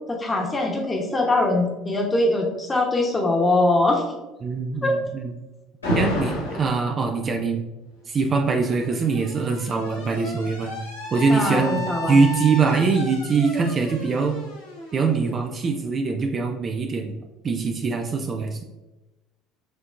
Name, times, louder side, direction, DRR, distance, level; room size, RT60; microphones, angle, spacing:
voice 1, 0.1-4.0 4.8-4.9 11.3-12.2, left 2 dB, 20° left, 0 dB, 1.1 m, -22 dB
voice 2, 4.4-5.3 5.9-7.6 8.1-10.7 11.1-14.4 14.9-17.1 17.4-18.6, right 4 dB, 35° right, 4 dB, 0.5 m, -23 dB
Alarm, 5.8-6.8 8.0-15.7, equal, 85° left, 1.0 m, -32 dB
6.2 x 2.8 x 2.5 m, 1.0 s
figure-of-eight pair, 60°, 0 cm